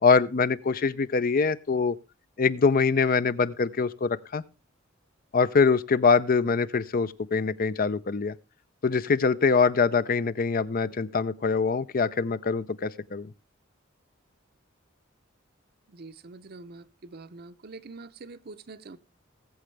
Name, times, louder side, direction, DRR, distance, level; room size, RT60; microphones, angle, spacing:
voice 1, 0.0-2.0 2.4-4.4 5.3-8.3 8.8-13.3, left 5 dB, 45° left, 0.5 m, -24 dB
voice 2, 15.9-19.0, right 3 dB, 50° right, 0.7 m, -45 dB
19.5 x 7.7 x 3.3 m
head